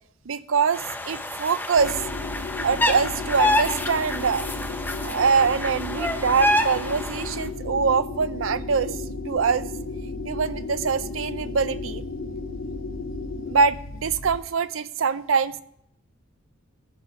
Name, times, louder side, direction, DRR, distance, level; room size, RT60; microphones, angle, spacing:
voice 1, 0.3-2.0 2.6-4.5 5.0-9.7 10.2-12.0 13.5-15.6, right 5 dB, 75° right, 14 dB, 0.6 m, -24 dB
sound 1, 0.7-7.4, left 1 dB, 10° left, 0.8 m, -27 dB
sound 2, 1.8-14.4, left 3 dB, 60° left, 0.8 m, -34 dB
15.0 x 5.0 x 5.9 m, 0.70 s
head